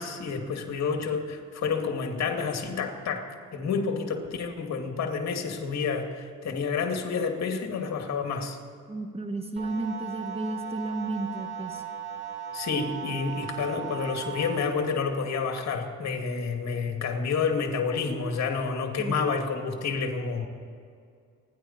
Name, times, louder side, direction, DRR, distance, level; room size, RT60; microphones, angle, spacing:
voice 1, 0.0-8.6 12.5-20.5, left 5 dB, 60° left, 4 dB, 2.4 m, -29 dB
voice 2, 8.9-11.8 19.0-19.2, right 2 dB, 20° right, 6 dB, 1.5 m, -33 dB
sound 1, 9.6-14.6, right 8 dB, 40° right, 4.4 m, -37 dB
29.0 x 11.0 x 4.3 m, 2.3 s
cardioid pair, 90°, 30 cm